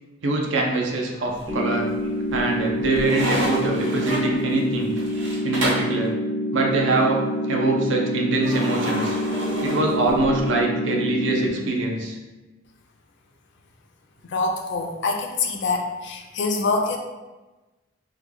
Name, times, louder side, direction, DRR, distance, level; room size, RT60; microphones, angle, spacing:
voice 1, 0.2-1.9 2.3-4.9 5.4-6.1 6.5-7.2 7.5-9.2 9.6-12.2, right 2 dB, 75° right, 0 dB, 0.5 m, -23 dB
sound 1, 1.3-1.9 2.3-6.0 8.4-10.5, equal, 90° right, 1.0 m, -30 dB
sound 2, 1.5-11.5, left 1 dB, ahead, 0.5 m, -27 dB
voice 2, 14.2-17.0, left 3 dB, 65° left, 2 dB, 0.4 m, -25 dB
3.1 x 2.2 x 3.6 m, 1.1 s
head